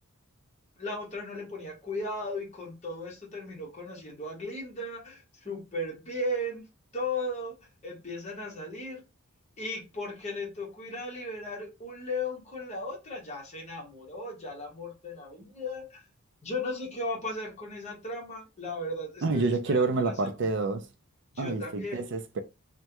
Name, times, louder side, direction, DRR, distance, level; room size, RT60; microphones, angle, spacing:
voice 1, 0.8-6.7 6.9-7.5 7.8-9.0 9.6-16.0 16.4-20.1 20.4-20.5 21.3-22.0, left 1 dB, 30° left, 1.1 m, -36 dB
voice 2, 19.2-20.9 21.4-22.4, right 3 dB, 55° right, 0.4 m, -28 dB
3.2 x 2.2 x 2.8 m
head